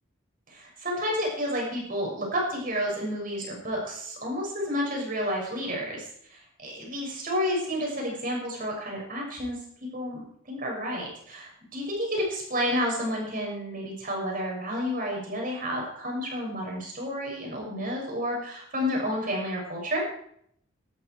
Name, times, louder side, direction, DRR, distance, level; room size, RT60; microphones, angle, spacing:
voice 1, 0.5-9.6 9.9-20.1, equal, 45° right, -1 dB, 6.5 m, -30 dB
17.5 x 13.0 x 4.8 m, 0.68 s
head